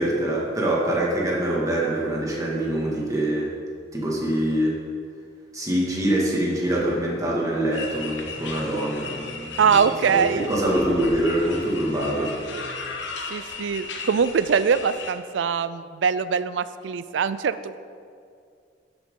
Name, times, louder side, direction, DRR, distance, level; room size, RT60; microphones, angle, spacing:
voice 1, 0.0-3.5 3.9-4.8 5.5-12.4, right 1 dB, 20° right, -4 dB, 1.9 m, -24 dB
sound 1, 7.7-15.1, left 4 dB, 75° left, 1.0 m, -36 dB
voice 2, 9.6-10.5 12.5-12.7 13.3-17.8, right 6 dB, 75° right, 14 dB, 0.4 m, -23 dB
12.0 x 7.8 x 3.8 m, 2.3 s
head